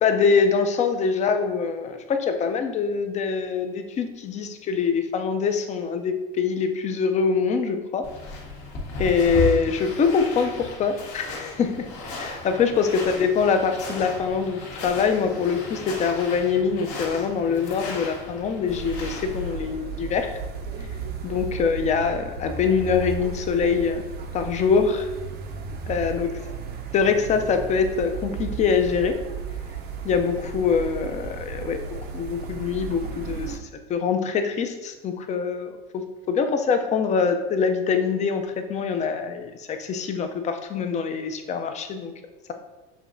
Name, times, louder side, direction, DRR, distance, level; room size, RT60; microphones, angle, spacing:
voice 1, 0.0-8.1 9.0-20.3 21.2-24.0 24.3-25.1 25.9-26.3 26.9-29.1 30.0-31.8 32.1-33.6 33.9-42.1, left 5 dB, 25° left, 7 dB, 0.4 m, -24 dB
sound 1, 8.0-19.5, left 1 dB, 55° left, 1.3 m, -35 dB
sound 2, 18.7-33.6, right 5 dB, 35° right, 0.5 m, -34 dB
6.6 x 2.9 x 2.6 m, 1.1 s
supercardioid pair, 115°, 29 cm